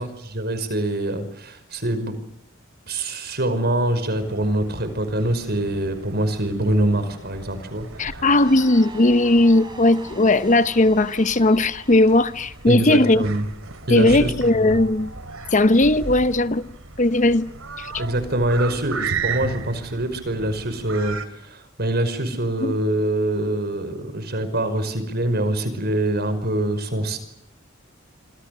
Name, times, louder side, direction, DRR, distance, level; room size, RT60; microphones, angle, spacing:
voice 1, 0.0-2.2 2.9-8.2 12.7-13.4 13.9-14.8 18.0-27.2, right 1 dB, 50° right, 5.5 m, -24 dB
sound 1, 4.2-21.3, right 4 dB, 75° right, 2.9 m, -36 dB
voice 2, 8.0-13.2 13.9-15.1 15.5-16.6 17.0-17.5 17.8-17.9 22.6-22.8, left 2 dB, 35° left, 0.9 m, -17 dB
sound 2, 8.4-13.0, right 3 dB, 20° right, 7.8 m, -43 dB
27.0 x 26.5 x 6.8 m
head